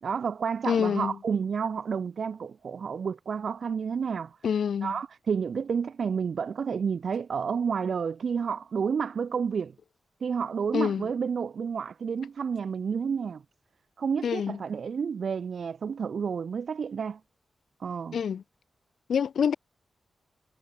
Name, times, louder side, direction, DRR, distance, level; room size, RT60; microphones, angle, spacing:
voice 1, 0.0-4.4 4.8-9.7 10.2-13.4 14.0-17.2 17.8-18.2, right 6 dB, 60° right, 2.8 m, -30 dB
voice 2, 0.7-1.1 4.4-4.9 10.7-11.1 14.2-14.6 18.1-18.4 19.1-19.5, left 7 dB, 90° left, 2.1 m, -26 dB
wide cardioid pair, 180°, 0 cm